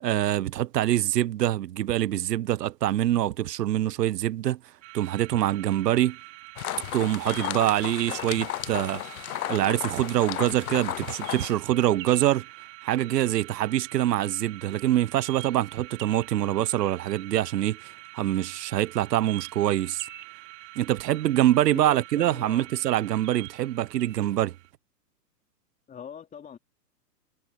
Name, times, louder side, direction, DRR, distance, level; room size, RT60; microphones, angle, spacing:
voice 1, 0.0-4.6 4.9-6.2 6.9-9.0 9.5-12.4 12.8-20.0 20.8-24.5, right 13 dB, 75° right, 0.7 m, -25 dB
sound 1, 4.8-24.7, right 19 dB, 45° right, 4.6 m, -45 dB
sound 2, 6.6-11.5, left 15 dB, 60° left, 0.6 m, -34 dB
voice 2, 21.7-22.7 25.9-26.6, left 7 dB, 15° left, 2.8 m, -41 dB
hypercardioid pair, 115°, 49 cm